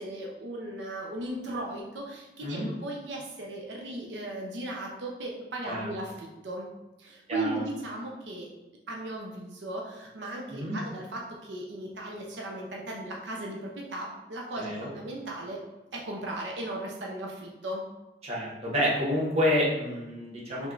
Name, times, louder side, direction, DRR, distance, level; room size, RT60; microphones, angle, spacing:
voice 1, 0.0-6.7 7.0-8.5 8.9-15.6 15.9-17.8, right 1 dB, 85° right, -1 dB, 0.6 m, -37 dB
voice 2, 14.6-14.9 18.2-20.7, left 1 dB, 35° right, -5 dB, 1.1 m, -28 dB
3.5 x 3.1 x 3.8 m, 1.0 s
head